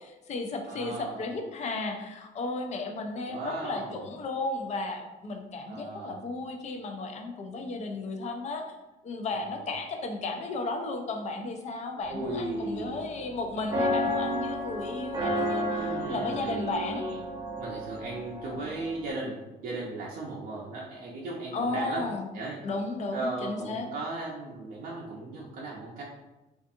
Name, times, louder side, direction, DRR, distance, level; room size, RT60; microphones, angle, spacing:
voice 1, 0.0-8.6 9.0-17.0 21.5-22.3 22.6-23.9, left 3 dB, 45° left, 4 dB, 0.4 m, -34 dB
voice 2, 0.7-1.2 3.3-4.0 5.7-6.2 9.3-9.6 12.1-13.0 15.8-17.2 17.6-22.1 22.3-22.6 23.1-26.0, right 2 dB, 55° right, -4 dB, 0.5 m, -36 dB
sound 1, 12.0-19.1, equal, 25° right, 0.8 m, -33 dB
2.5 x 2.4 x 2.6 m, 1.0 s
cardioid pair, 110°, 17 cm